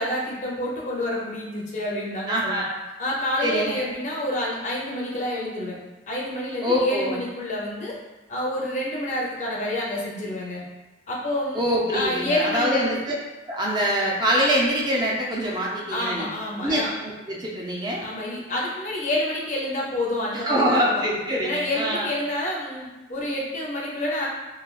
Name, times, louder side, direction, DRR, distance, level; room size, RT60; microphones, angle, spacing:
voice 1, 0.0-2.7 3.0-5.8 6.1-8.0 8.3-10.6 11.1-11.6 11.9-13.0 15.9-16.9 18.0-21.0 21.4-24.3, left 1 dB, 40° left, -3 dB, 0.5 m, -28 dB
voice 2, 2.3-2.7 3.4-3.9 6.6-7.2 11.5-12.9 13.4-16.3 16.6-18.0 20.3-22.1, equal, 25° right, -4 dB, 0.4 m, -24 dB
3.1 x 2.2 x 2.3 m, 1.1 s
head